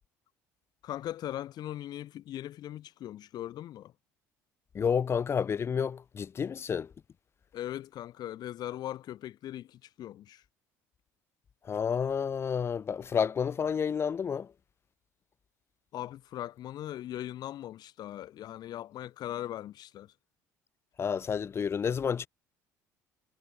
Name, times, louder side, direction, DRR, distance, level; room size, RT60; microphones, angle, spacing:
voice 1, 0.8-3.9 7.5-10.4 15.9-20.1, left 12 dB, 55° left, 2.3 m, -39 dB
voice 2, 4.7-6.9 11.6-14.5 21.0-22.3, left 7 dB, 30° left, 0.4 m, -30 dB
hypercardioid pair, 60°, 8 cm